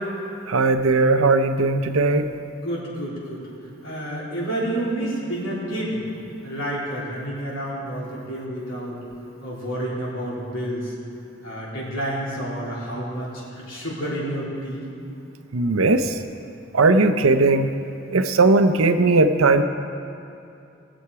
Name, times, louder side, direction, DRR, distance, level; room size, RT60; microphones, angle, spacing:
voice 1, 0.5-2.3 15.5-16.2 16.7-17.7 18.1-19.6, right 3 dB, 90° right, 9 dB, 0.7 m, -18 dB
voice 2, 2.3-3.4 3.8-6.0 6.4-9.0 9.4-10.9 11.4-14.9, right 1 dB, 75° left, -6 dB, 3.5 m, -29 dB
19.5 x 7.1 x 4.7 m, 2.6 s
head